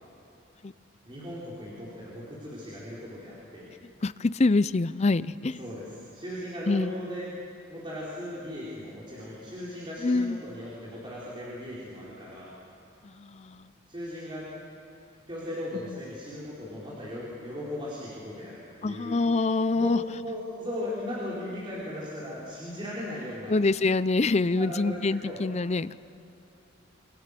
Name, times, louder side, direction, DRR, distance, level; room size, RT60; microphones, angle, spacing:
voice 1, 1.1-3.7 5.6-7.3 7.7-12.5 13.9-14.5 15.3-19.2 19.7-19.9 20.2-23.6 24.5-25.4, left 1 dB, 25° right, -7 dB, 4.6 m, -37 dB
voice 2, 4.0-5.6 6.7-6.9 10.0-10.4 13.0-13.7 15.9-16.0 18.8-20.0 23.5-26.0, left 3 dB, 35° left, 16 dB, 0.5 m, -25 dB
28.0 x 26.0 x 6.8 m, 2.8 s
head